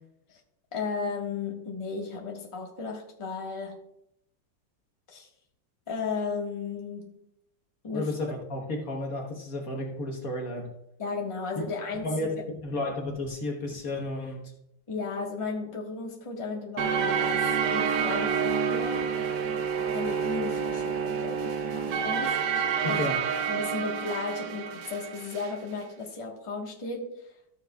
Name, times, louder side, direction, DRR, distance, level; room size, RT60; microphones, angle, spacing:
voice 1, 0.7-3.9 5.1-5.3 5.9-7.1 7.8-8.2 11.0-12.3 14.9-19.2 19.9-23.1 23.5-27.3, left 4 dB, 20° left, 1.3 m, -35 dB
voice 2, 7.9-10.7 11.6-11.7 12.0-12.3 12.6-14.5 22.8-23.1, left 2 dB, 55° left, 1.5 m, -32 dB
sound 1, 16.8-25.6, right 6 dB, 70° right, 1.3 m, -28 dB
14.0 x 7.1 x 2.3 m
omnidirectional pair, 2.0 m